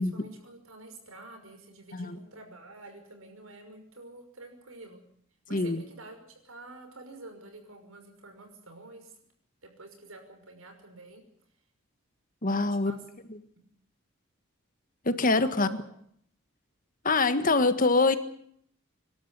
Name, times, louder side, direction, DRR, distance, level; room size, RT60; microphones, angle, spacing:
voice 1, 0.0-5.0 5.5-9.2 9.6-11.2 12.6-13.0 15.4-15.9, right 2 dB, 80° right, 5 dB, 5.9 m, -48 dB
voice 2, 5.5-5.8 12.4-12.9 13.3-13.4 15.0-15.7 17.0-18.2, left 3 dB, 40° left, 11 dB, 1.6 m, -24 dB
26.0 x 12.5 x 9.9 m, 0.66 s
head